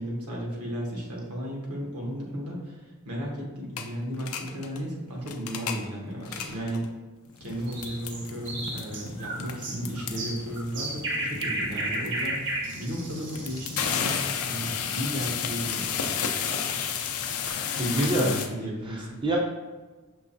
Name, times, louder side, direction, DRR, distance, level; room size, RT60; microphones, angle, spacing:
voice 1, 0.0-6.9 7.4-15.9 17.8-19.2, equal, 80° right, -2 dB, 1.2 m, -34 dB
sound 1, 3.8-3.9 4.1-4.8 5.2-5.8 6.2-6.9 7.3-18.5, left 7 dB, 70° left, 0.4 m, -33 dB
sound 2, 7.7-14.2, right 1 dB, 55° right, 0.8 m, -33 dB
voice 2, 17.3-18.3 19.2-19.4, right 1 dB, 20° right, -2 dB, 0.4 m, -27 dB
6.1 x 2.9 x 2.6 m, 1.2 s
head